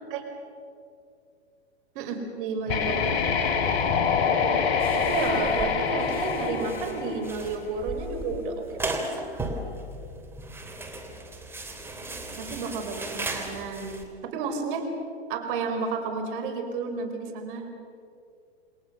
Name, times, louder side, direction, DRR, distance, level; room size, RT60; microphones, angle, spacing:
voice 1, 1.9-3.0 4.9-9.3 12.3-14.0 14.2-14.9 15.3-17.7, right 4 dB, 50° right, 5 dB, 4.9 m, -31 dB
sound 1, 2.7-7.6, left 6 dB, 45° left, 3.0 m, -26 dB
sound 2, 4.8-14.0, right 1 dB, 5° right, 3.0 m, -36 dB
28.5 x 21.5 x 6.8 m, 2.5 s
hypercardioid pair, 125°, 34 cm